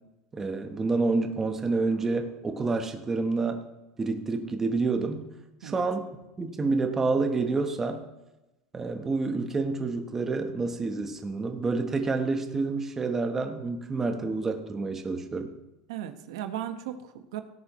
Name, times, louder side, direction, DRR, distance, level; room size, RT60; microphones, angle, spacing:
voice 1, 0.3-3.6 4.0-5.2 5.6-8.0 8.7-15.5, right 3 dB, 15° right, 5 dB, 1.0 m, -28 dB
voice 2, 15.9-17.4, right 11 dB, 85° right, 8 dB, 1.1 m, -36 dB
17.5 x 10.5 x 3.1 m, 0.98 s
supercardioid pair, 160°, 3 cm